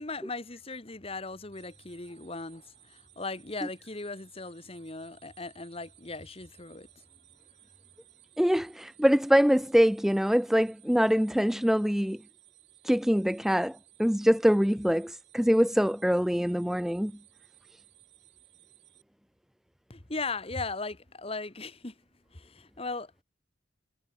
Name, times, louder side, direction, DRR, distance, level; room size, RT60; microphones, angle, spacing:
voice 1, 0.0-6.9 19.9-21.9 22.3-23.2, left 3 dB, 30° left, 1.5 m, -38 dB
sound 1, 1.5-19.0, right 17 dB, 60° right, 7.9 m, -60 dB
voice 2, 8.4-12.2 12.8-17.1, equal, ahead, 0.4 m, -24 dB
head